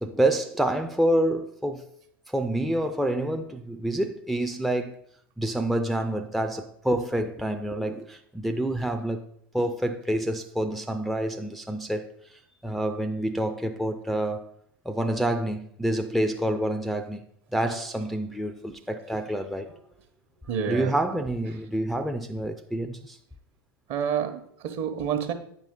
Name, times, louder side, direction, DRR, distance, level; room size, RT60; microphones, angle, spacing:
voice 1, 0.0-1.9 2.3-4.9 5.4-9.2 9.5-12.1 12.6-14.4 14.9-17.2 17.5-19.7 20.7-23.2, right 1 dB, ahead, 0.4 m, -27 dB
voice 2, 20.5-20.9 23.9-25.3, right 8 dB, 50° right, 1.1 m, -28 dB
8.7 x 5.2 x 3.7 m
hypercardioid pair, 85°, 12 cm